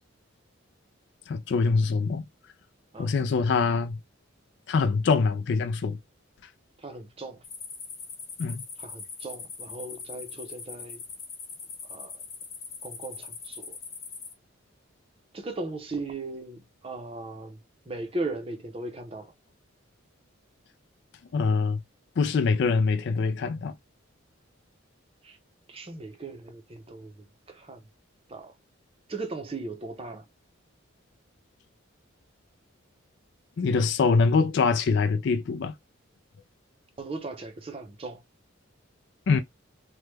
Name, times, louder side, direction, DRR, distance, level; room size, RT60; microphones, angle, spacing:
voice 1, 1.3-2.2 3.0-4.0 4.7-6.0 8.4-8.6 21.3-21.8 22.2-23.7 33.6-35.7 39.3-39.4, left 4 dB, 55° left, 0.4 m, -24 dB
voice 2, 6.8-7.4 8.8-11.0 11.9-12.2 12.8-13.8 15.3-17.6 17.9-19.3 25.2-25.4 25.7-27.1 27.5-27.8 28.3-28.5 29.1-30.2 37.0-38.2, right 2 dB, 30° right, 0.6 m, -37 dB
sound 1, 7.4-14.3, left 5 dB, 30° left, 0.7 m, -41 dB
3.0 x 2.1 x 3.3 m
head